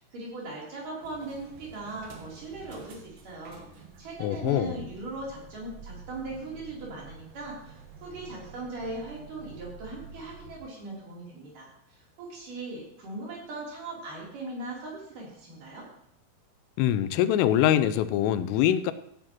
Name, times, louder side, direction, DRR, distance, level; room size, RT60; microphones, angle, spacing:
voice 1, 0.0-15.9, right 2 dB, 45° right, -4 dB, 4.5 m, -39 dB
sound 1, 1.0-10.6, right 4 dB, 65° right, 2.8 m, -49 dB
voice 2, 4.2-4.8 16.8-18.9, left 11 dB, 85° left, 13 dB, 3.2 m, -24 dB
15.0 x 10.5 x 3.0 m, 0.73 s
omnidirectional pair, 5.8 m